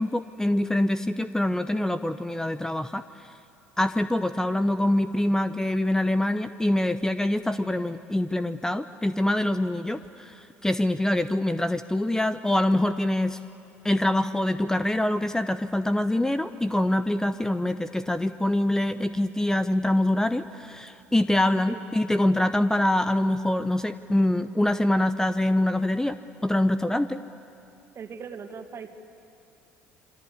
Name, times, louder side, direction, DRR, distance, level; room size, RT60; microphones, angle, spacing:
voice 1, 0.0-3.0 3.8-13.4 13.8-26.2 26.4-27.2, left 1 dB, 10° left, 12 dB, 0.8 m, -25 dB
voice 2, 27.9-28.9, right 6 dB, 40° right, 7 dB, 2.1 m, -39 dB
27.5 x 24.0 x 8.4 m, 2.6 s
hypercardioid pair, 60°, 7 cm